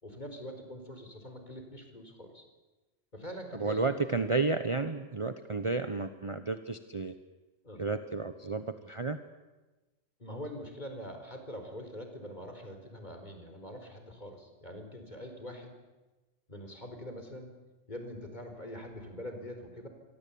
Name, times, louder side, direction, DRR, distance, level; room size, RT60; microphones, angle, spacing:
voice 1, 0.0-2.5 3.1-4.2 7.6-7.9 10.2-15.7 16.5-17.5 17.9-19.9, equal, 35° left, 5 dB, 4.6 m, -44 dB
voice 2, 3.6-7.1 7.8-9.2, right 3 dB, 25° right, 9 dB, 1.1 m, -32 dB
27.0 x 23.5 x 8.7 m, 1.1 s
omnidirectional pair, 1.3 m